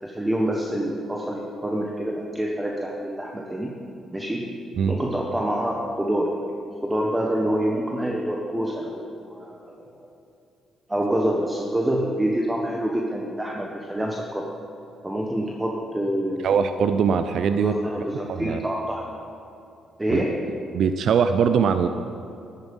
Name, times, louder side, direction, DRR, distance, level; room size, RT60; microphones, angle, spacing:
voice 1, 0.0-3.7 4.1-4.4 4.9-6.3 6.8-10.0 10.9-14.5 15.0-16.5 17.6-19.1 20.0-20.4, right 1 dB, 10° right, 0 dB, 1.3 m, -26 dB
voice 2, 16.4-17.7 18.3-18.6 20.1-20.2 20.7-21.9, right 7 dB, 65° right, 9 dB, 0.5 m, -21 dB
12.5 x 12.0 x 5.5 m, 2.6 s
cardioid pair, 90°, 0 cm